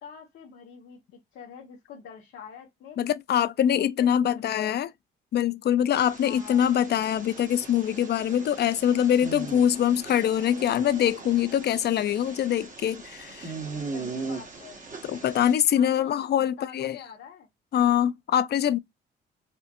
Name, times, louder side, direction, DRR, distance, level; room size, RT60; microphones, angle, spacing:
voice 1, 0.0-3.0 3.8-4.8 6.2-6.6 13.9-14.9 15.8-17.5, left 7 dB, 75° left, 1.3 m, -45 dB
voice 2, 3.0-4.9 5.3-13.5 15.0-17.0 17.7-18.8, left 10 dB, 55° left, 0.5 m, -24 dB
sound 1, 5.9-15.5, right 4 dB, 40° right, 1.6 m, -40 dB
4.3 x 2.4 x 2.5 m
cardioid pair, 90°, 20 cm